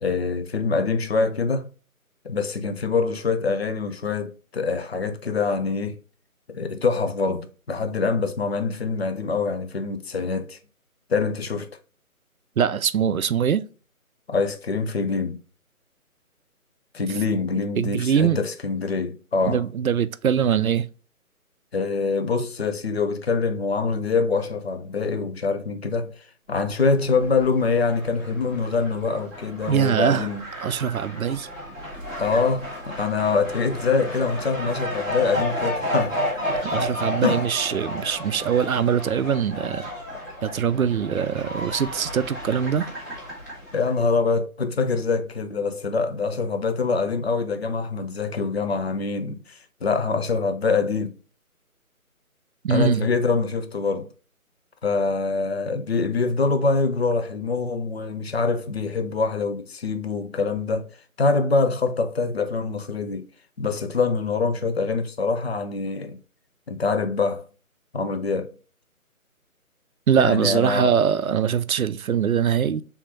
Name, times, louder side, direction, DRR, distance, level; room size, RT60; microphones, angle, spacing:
voice 1, 0.0-1.7 2.2-6.0 6.5-10.6 11.1-11.7 14.3-15.4 16.9-19.6 21.7-26.2 26.5-30.4 32.2-36.2 37.2-37.4 43.7-51.1 52.7-54.1 54.8-63.3 63.6-66.2 66.7-67.5 67.9-68.5 70.2-70.9, left 4 dB, 45° left, 0.6 m, -24 dB
voice 2, 12.6-13.6 17.8-18.4 19.5-20.9 29.7-31.5 36.6-39.9 40.4-42.9 52.6-53.1 70.1-72.8, right 8 dB, 70° right, 0.5 m, -22 dB
Fowl, 26.8-44.0, left 1 dB, 10° left, 0.9 m, -32 dB
4.3 x 3.6 x 2.7 m
figure-of-eight pair, 150°, 43 cm